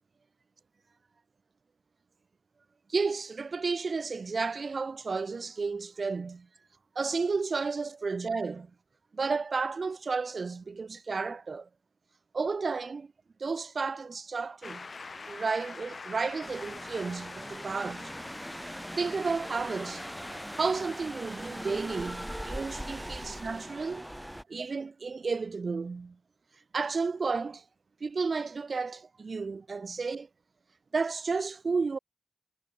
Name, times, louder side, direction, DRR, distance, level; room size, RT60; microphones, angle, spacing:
voice 1, 2.9-6.5 7.0-8.7 9.1-11.7 12.3-13.1 13.4-14.9 15.1-18.1 19.0-20.1 20.6-24.1 24.5-26.2 26.7-27.6 28.0-30.3 30.9-32.0, right 4 dB, 65° right, 0.4 m, -32 dB
Shout / Cheering / Applause, 14.6-22.1, left 4 dB, 65° left, 0.7 m, -46 dB
sound 1, 16.4-24.4, equal, 5° right, 2.0 m, -40 dB
cardioid pair, 50°, 0 cm